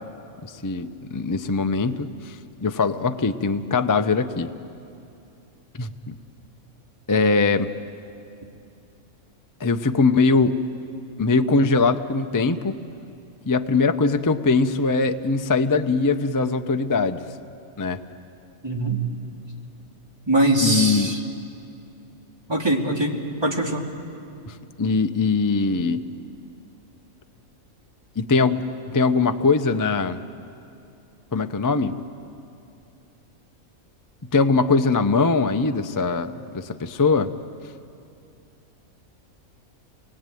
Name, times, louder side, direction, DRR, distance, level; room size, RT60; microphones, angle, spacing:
voice 1, 0.4-4.5 5.8-6.2 7.1-7.7 9.6-10.6 11.2-12.7 13.5-17.3 17.8-18.0 20.6-21.1 24.5-26.0 28.2-28.6 28.9-30.2 31.3-31.9 34.3-37.3, left 4 dB, 25° left, 8 dB, 0.4 m, -21 dB
voice 2, 18.6-19.0 20.3-21.2 22.5-23.2 23.4-23.8, right 1 dB, 15° right, -1 dB, 2.5 m, -22 dB
29.0 x 21.0 x 9.2 m, 2.6 s
omnidirectional pair, 1.5 m